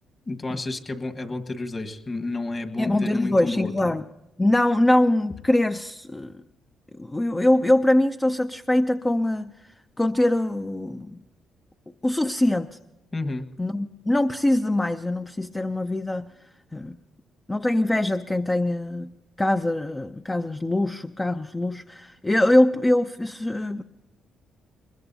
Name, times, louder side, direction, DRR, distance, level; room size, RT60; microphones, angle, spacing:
voice 1, 0.3-3.7 13.1-13.5, left 2 dB, 30° left, 6 dB, 1.5 m, -30 dB
voice 2, 2.8-4.0 4.4-6.4 7.0-9.7 10.0-11.2 12.0-12.8 13.6-16.3 16.7-17.0 17.5-19.1 19.4-23.8, left 1 dB, 15° left, 7 dB, 0.5 m, -23 dB
21.0 x 21.0 x 2.8 m, 0.99 s
cardioid pair, 90°, 0 cm